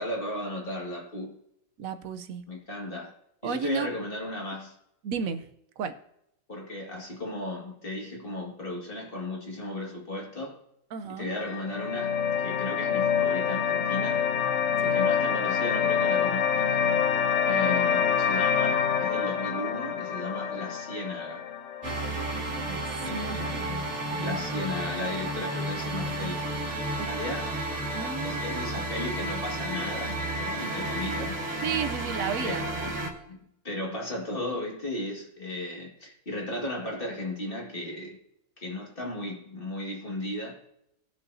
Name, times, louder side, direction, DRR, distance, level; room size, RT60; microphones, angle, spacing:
voice 1, 0.0-1.4 2.5-3.1 3.4-4.8 6.5-10.6 11.1-14.2 14.9-16.8 17.4-21.4 23.0-26.4 27.0-27.6 27.9-31.4 32.4-32.9 33.3-38.2 38.6-40.6, left 1 dB, 40° left, 2.2 m, -35 dB
voice 2, 1.8-2.4 3.4-3.9 5.0-5.5 5.8-5.9 10.9-11.3 14.8-15.0 22.6-23.5 27.0-27.1 27.9-28.6 31.6-32.7, right 6 dB, 80° right, 1.2 m, -33 dB
sound 1, 11.3-22.3, left 7 dB, 65° left, 1.1 m, -26 dB
sound 2, 21.8-33.1, right 1 dB, 60° right, 1.9 m, -32 dB
20.0 x 6.8 x 2.7 m
omnidirectional pair, 1.4 m